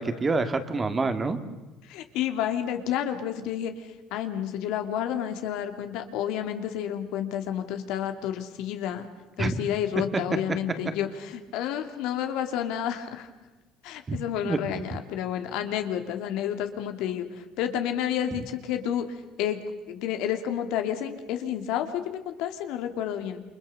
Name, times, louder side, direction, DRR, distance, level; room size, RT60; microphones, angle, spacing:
voice 1, 0.0-1.4 9.4-9.6 10.1-10.2 14.1-14.2 14.4-14.9, right 3 dB, 20° right, 9 dB, 2.0 m, -27 dB
voice 2, 1.8-9.1 9.4-13.3 13.8-19.1 19.4-19.6 19.9-23.4, left 10 dB, 80° left, 6 dB, 2.7 m, -30 dB
29.0 x 24.5 x 6.8 m, 1.1 s
cardioid pair, 125°, 0 cm